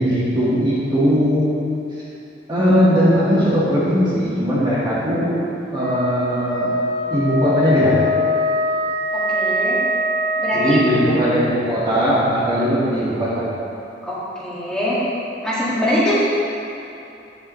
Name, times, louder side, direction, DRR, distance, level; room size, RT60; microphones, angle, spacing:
voice 1, 0.0-1.5 2.5-5.4 5.7-6.7 7.1-7.9 10.5-13.4, equal, 25° right, -10 dB, 1.6 m, -19 dB
Wind instrument woodwind instrument, 5.7-11.1, left 1 dB, 60° right, 1.3 m, -22 dB
voice 2, 9.1-9.8 10.4-10.8 14.0-15.0 15.4-16.2, left 1 dB, 5° left, -11 dB, 2.0 m, -23 dB
10.0 x 7.5 x 3.1 m, 2.8 s
head